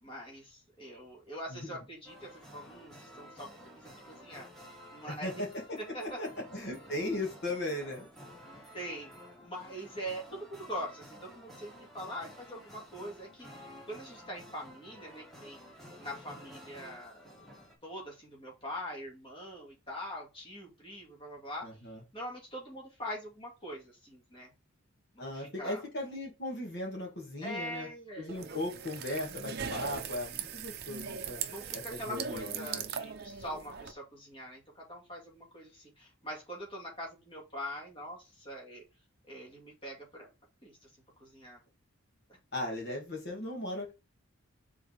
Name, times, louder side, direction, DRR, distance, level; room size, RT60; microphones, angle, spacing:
voice 1, 0.0-4.5 4.9-5.3 5.9-6.2 8.7-9.1 9.4-15.6 16.0-17.5 17.8-21.7 22.1-24.5 25.1-25.8 27.4-28.6 31.4-38.8 39.3-40.3 40.6-40.9 41.2-41.6, equal, 25° left, -2 dB, 2.1 m, -43 dB
sound 1, 2.0-17.7, equal, ahead, 1.6 m, -52 dB
voice 2, 5.1-8.1 21.6-22.0 25.2-27.9 28.2-31.4 31.7-32.9 42.5-43.9, left 1 dB, 55° left, -1 dB, 2.0 m, -37 dB
sound 2, 28.3-33.9, right 7 dB, 50° right, 0.7 m, -39 dB
5.0 x 3.9 x 4.9 m, 0.26 s
head